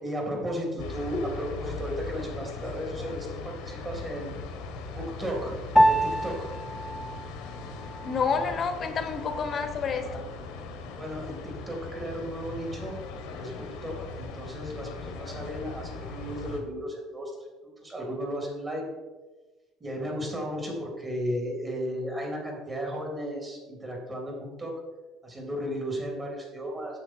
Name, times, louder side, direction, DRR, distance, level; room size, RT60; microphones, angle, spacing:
voice 1, 0.0-4.3 4.9-5.6 5.8-6.5 11.0-13.0 13.3-17.3 17.8-18.8 19.8-24.7 25.2-27.0, equal, 25° right, -1 dB, 3.6 m, -34 dB
sound 1, 0.8-16.6, left 4 dB, 90° left, 1.8 m, -39 dB
Piano, 5.8-15.4, equal, 5° left, 0.6 m, -30 dB
voice 2, 8.0-10.3, left 5 dB, 40° left, 7 dB, 1.5 m, -29 dB
9.3 x 7.6 x 4.6 m, 1.3 s
cardioid pair, 120°, 0 cm